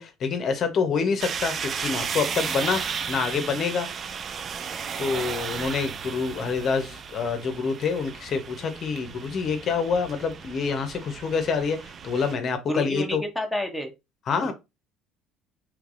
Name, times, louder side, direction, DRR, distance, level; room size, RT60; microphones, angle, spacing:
voice 1, 0.0-2.8 3.1-3.9 5.0-13.2 14.3-14.5, left 5 dB, 45° left, 0.7 m, -27 dB
sound 1, 1.2-12.3, right 6 dB, 40° right, 0.3 m, -34 dB
voice 2, 12.7-13.9 14.3-14.5, left 1 dB, ahead, 0.7 m, -30 dB
3.3 x 3.1 x 2.4 m
cardioid pair, 115°, 0 cm